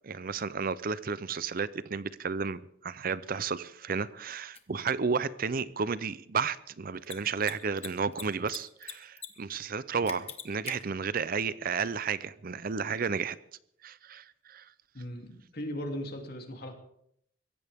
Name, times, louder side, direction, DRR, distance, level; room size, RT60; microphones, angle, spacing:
voice 1, 0.0-13.4 13.8-14.6, right 5 dB, 50° right, 0.6 m, -32 dB
Mechanisms, 4.5-4.6 6.9-7.1 7.4-7.5 7.8-8.6 8.8-9.3 9.5-9.6 10.1-10.7, left 7 dB, 35° left, 1.5 m, -40 dB
voice 2, 14.9-16.7, equal, 55° left, 2.9 m, -38 dB
22.5 x 16.5 x 3.6 m
head